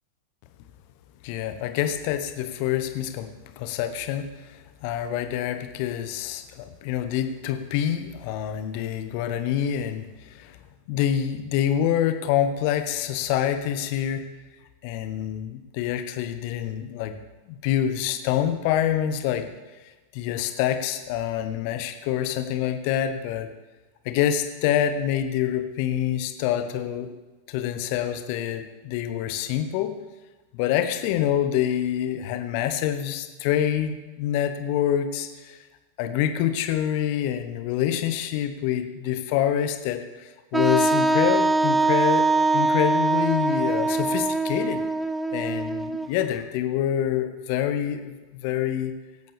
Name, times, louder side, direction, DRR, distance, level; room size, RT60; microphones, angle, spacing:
voice 1, 1.2-3.3 3.6-10.6 10.9-14.2 14.8-17.2 17.5-19.5 20.1-23.5 24.0-27.1 27.5-29.9 30.5-35.6 36.0-42.3 42.5-44.8 45.3-48.9, left 10 dB, 45° left, 8 dB, 1.2 m, -26 dB
Wind instrument woodwind instrument, 40.5-46.3, right 3 dB, 5° right, 0.5 m, -23 dB
24.0 x 8.2 x 3.5 m, 1.2 s
figure-of-eight pair, 90°, 0 cm